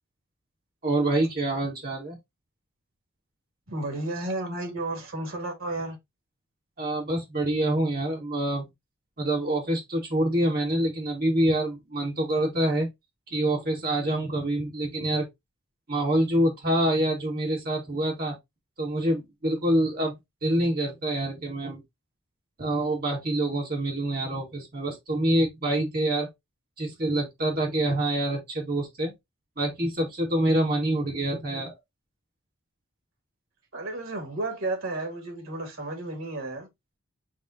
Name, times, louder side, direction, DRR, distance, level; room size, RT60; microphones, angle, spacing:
voice 1, 0.8-2.2 6.8-8.6 9.2-12.9 13.3-15.3 15.9-18.3 18.8-21.8 22.6-26.3 26.8-29.1 29.6-31.7, right 1 dB, 45° right, 1.6 m, -26 dB
voice 2, 3.7-6.0 33.7-36.7, right 2 dB, 80° right, 2.0 m, -32 dB
7.2 x 2.4 x 2.6 m
head